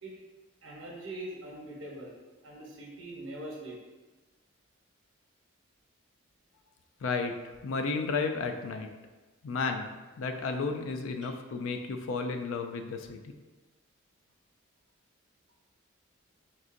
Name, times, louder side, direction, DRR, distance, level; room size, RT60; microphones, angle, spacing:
voice 1, 0.6-2.1 2.4-3.8, right 1 dB, 70° right, -2 dB, 0.9 m, -42 dB
voice 2, 7.0-8.9 9.4-13.3, left 4 dB, 80° left, 6 dB, 0.4 m, -33 dB
3.8 x 3.6 x 2.5 m, 1.2 s
head